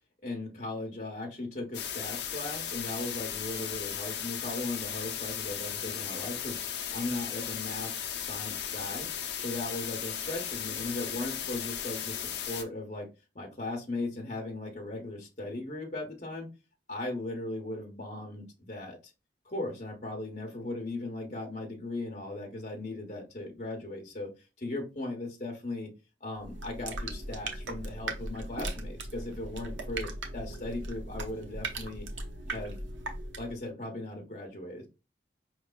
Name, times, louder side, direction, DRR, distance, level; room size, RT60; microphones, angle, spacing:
voice 1, 0.2-9.1 9.4-13.1 13.3-16.5 16.9-19.1 19.4-24.3 24.6-25.9 26.2-32.1 32.5-32.8 33.4-34.9, left 2 dB, 40° left, 1 dB, 0.9 m, -38 dB
sound 1, 1.7-12.6, left 9 dB, 70° left, 0.6 m, -36 dB
sound 2, 26.4-33.6, right 2 dB, 90° right, 0.7 m, -38 dB
5.2 x 3.1 x 2.2 m, 0.28 s
head